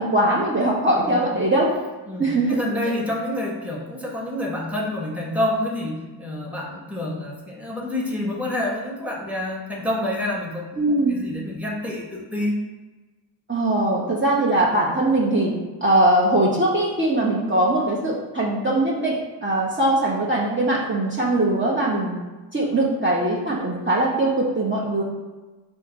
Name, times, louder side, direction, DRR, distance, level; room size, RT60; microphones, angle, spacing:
voice 1, 0.0-1.7 2.2-2.6 10.8-11.2 13.5-15.5 15.8-19.2 19.4-22.2 22.5-25.0, right 1 dB, 25° right, -6 dB, 0.9 m, -21 dB
voice 2, 1.0-1.3 2.1-12.5, left 1 dB, 5° right, -3 dB, 1.1 m, -28 dB
5.0 x 2.6 x 3.9 m, 1.2 s
cardioid pair, 65°, 44 cm